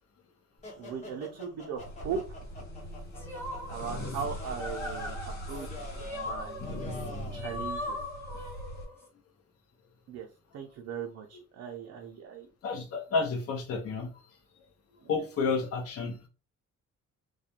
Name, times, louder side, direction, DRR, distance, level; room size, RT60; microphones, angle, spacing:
sound 1, 0.6-7.4, left 2 dB, 25° left, 0.9 m, -46 dB
voice 1, 0.7-2.2 3.7-5.8 6.2-6.6 7.3-8.0 8.4-8.6 10.1-12.5 15.0-15.1, right 6 dB, 65° right, 0.5 m, -39 dB
sound 2, 1.8-8.8, equal, 75° left, 1.4 m, -41 dB
sound 3, 3.1-9.1, left 1 dB, 10° left, 0.6 m, -40 dB
voice 2, 12.6-14.1 15.1-16.3, left 4 dB, 55° left, 0.6 m, -31 dB
2.4 x 2.2 x 2.9 m
cardioid pair, 175°, 29 cm